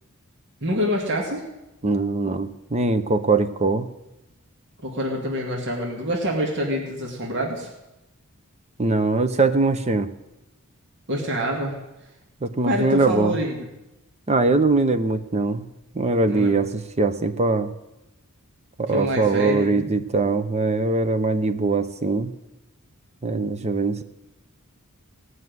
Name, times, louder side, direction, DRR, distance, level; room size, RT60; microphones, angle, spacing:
voice 1, 0.6-1.5 4.8-7.7 11.1-11.8 12.6-13.7 16.3-16.6 18.9-19.9, equal, 55° right, 0 dB, 2.2 m, -26 dB
voice 2, 1.8-3.9 8.8-10.1 12.4-13.4 14.3-15.7 15.9-17.7 18.8-22.3 23.2-24.0, right 3 dB, 30° right, 10 dB, 0.8 m, -22 dB
17.5 x 6.3 x 9.4 m, 0.96 s
head